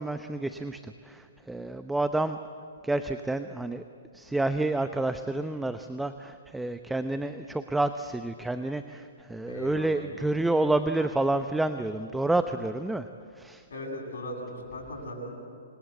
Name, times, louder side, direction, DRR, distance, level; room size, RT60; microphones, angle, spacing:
voice 1, 0.0-2.4 2.8-3.8 4.1-13.1 13.4-13.6, right 2 dB, 5° right, 9 dB, 0.8 m, -29 dB
voice 2, 9.4-10.2 13.7-15.4, left 1 dB, 70° left, 2 dB, 7.8 m, -38 dB
28.0 x 24.0 x 8.4 m, 2.4 s
hypercardioid pair, 125°, 0 cm